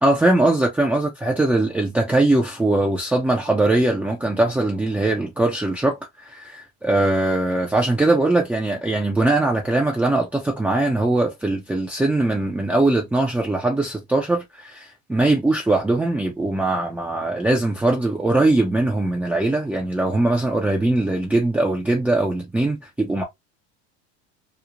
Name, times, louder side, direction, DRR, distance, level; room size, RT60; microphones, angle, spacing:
voice 1, 0.0-23.2, right 2 dB, 5° right, 0.5 m, -21 dB
3.1 x 2.0 x 2.3 m
supercardioid pair, 115°, 34 cm